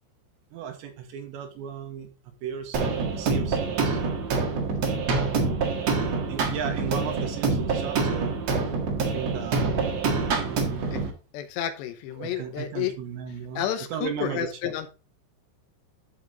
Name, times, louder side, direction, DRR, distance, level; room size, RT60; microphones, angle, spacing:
voice 1, 0.5-2.1 2.4-4.0 6.3-8.4 9.0-9.7 10.4-10.9 12.2-13.6 13.9-14.5, right 8 dB, 80° right, 5 dB, 3.5 m, -35 dB
sound 1, 2.7-11.1, right 4 dB, 60° right, 1.8 m, -26 dB
voice 2, 11.3-12.9 13.5-14.9, left 11 dB, 75° left, 9 dB, 2.9 m, -31 dB
12.5 x 5.0 x 3.9 m, 0.32 s
omnidirectional pair, 5.3 m